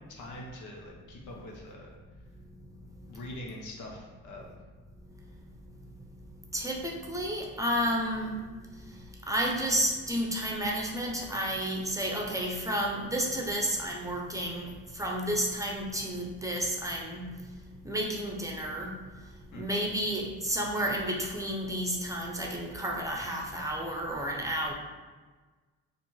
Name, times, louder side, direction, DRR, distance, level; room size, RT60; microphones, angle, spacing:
voice 1, 0.1-1.9 3.1-4.6 19.5-19.6, left 1 dB, 80° left, 0 dB, 1.0 m, -43 dB
voice 2, 6.5-8.3 9.3-17.3 17.8-18.9 19.5-24.7, right 1 dB, 10° right, -1 dB, 0.8 m, -31 dB
4.3 x 2.7 x 4.6 m, 1.3 s
cardioid pair, 90°, 30 cm